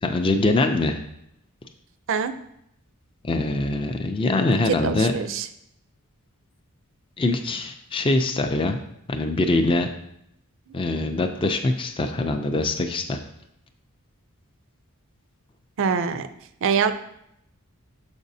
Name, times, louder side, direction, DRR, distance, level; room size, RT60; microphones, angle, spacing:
voice 1, 0.0-1.0 3.2-5.1 7.2-8.8 9.1-9.9 10.7-13.2, left 2 dB, 25° left, 5 dB, 0.4 m, -23 dB
voice 2, 4.7-5.5 15.8-16.3 16.6-16.9, right 6 dB, 60° right, 10 dB, 0.4 m, -24 dB
7.1 x 5.1 x 2.7 m, 0.76 s
head